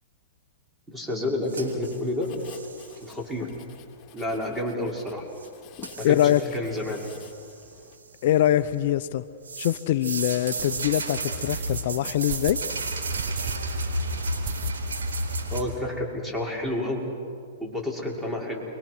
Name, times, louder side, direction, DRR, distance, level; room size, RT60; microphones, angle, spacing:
voice 1, 0.9-2.3 3.0-3.5 4.1-5.2 6.0-6.2 6.5-7.1 15.5-17.0 17.6-18.6, left 1 dB, 10° right, -1 dB, 5.7 m, -29 dB
Writing, 1.5-8.0, left 7 dB, 35° left, 2.3 m, -48 dB
sound 1, 1.5-3.0 5.4-5.5 5.8-6.4 6.8-7.6 8.0-8.8 9.4-15.6, right 2 dB, 85° right, 4.1 m, -32 dB
voice 2, 6.0-6.4 8.2-9.2 9.6-12.6, left 12 dB, 60° left, 13 dB, 0.8 m, -23 dB
sound 2, 9.2-9.3 9.8-9.9 10.6-10.9 11.5-11.8 12.3-12.6 13.1-13.6 13.9-14.0 14.4-15.1 15.4-15.5 15.8-15.9 16.1-16.8, right 12 dB, 50° right, 0.7 m, -37 dB
29.5 x 23.5 x 6.3 m, 2.2 s
hypercardioid pair, 125°, 0 cm